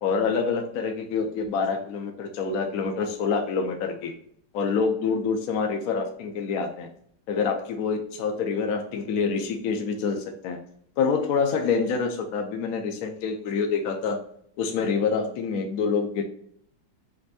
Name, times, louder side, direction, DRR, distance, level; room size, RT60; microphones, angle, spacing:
voice 1, 0.0-4.1 4.5-6.9 7.3-10.6 11.0-14.2 14.6-16.2, left 5 dB, 70° left, 4 dB, 0.9 m, -26 dB
5.3 x 2.6 x 2.6 m, 0.65 s
omnidirectional pair, 2.0 m